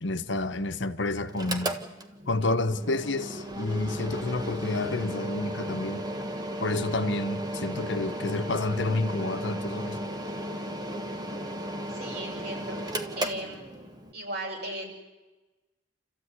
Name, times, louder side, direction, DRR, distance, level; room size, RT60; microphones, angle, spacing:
voice 1, 0.0-1.8 2.3-6.1 6.6-10.0, left 2 dB, 65° left, 1.1 m, -29 dB
Mechanical fan, 1.3-14.1, equal, 20° right, 1.5 m, -35 dB
voice 2, 11.9-13.7 14.1-14.9, right 1 dB, 55° right, 7.3 m, -37 dB
28.5 x 14.5 x 9.7 m
head